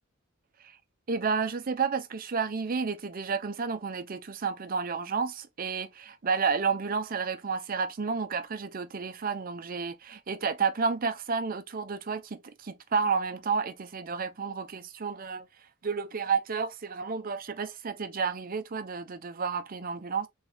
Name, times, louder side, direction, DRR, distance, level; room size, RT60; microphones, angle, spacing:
voice 1, 1.1-15.4 15.8-20.3, right 5 dB, 45° right, 0.5 m, -31 dB
3.6 x 3.3 x 2.8 m
head